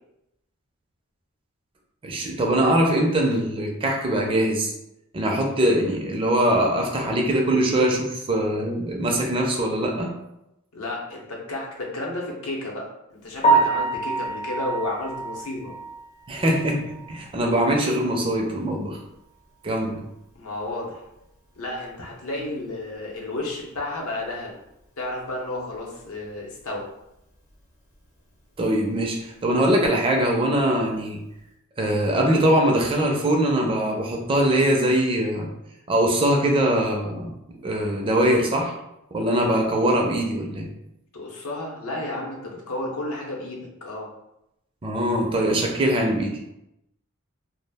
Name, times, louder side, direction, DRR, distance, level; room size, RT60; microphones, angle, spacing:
voice 1, 2.0-4.7 5.1-10.1 16.3-19.0 19.6-20.0 28.6-31.2 31.8-35.5 35.9-37.3 37.6-38.7 39.1-40.7 44.8-46.4, right 1 dB, 25° right, 1 dB, 0.4 m, -22 dB
voice 2, 10.7-15.7 20.3-21.0 21.6-24.6 25.0-26.9 41.1-44.1, left 2 dB, 70° left, -2 dB, 0.7 m, -32 dB
Piano, 13.4-17.4 17.8-17.9 18.4-18.5 18.8-18.9 22.0-22.1 30.6-30.8, right 3 dB, 30° left, 0.5 m, -25 dB
2.3 x 2.0 x 3.3 m, 0.86 s
head